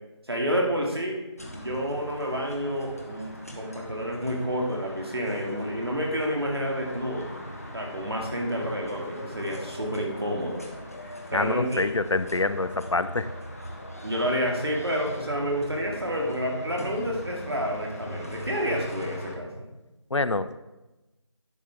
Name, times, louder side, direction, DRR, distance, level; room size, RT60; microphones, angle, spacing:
voice 1, 0.3-1.2 1.5-7.3 7.7-10.6 11.3-11.9 14.0-19.7, equal, 55° right, 0 dB, 2.2 m, -29 dB
sound 1, 1.4-19.4, equal, 30° left, 0.9 m, -40 dB
voice 2, 11.3-13.3 20.1-20.6, left 3 dB, 75° left, 14 dB, 0.5 m, -26 dB
10.5 x 6.6 x 3.5 m, 1.0 s
figure-of-eight pair, 175°, 16 cm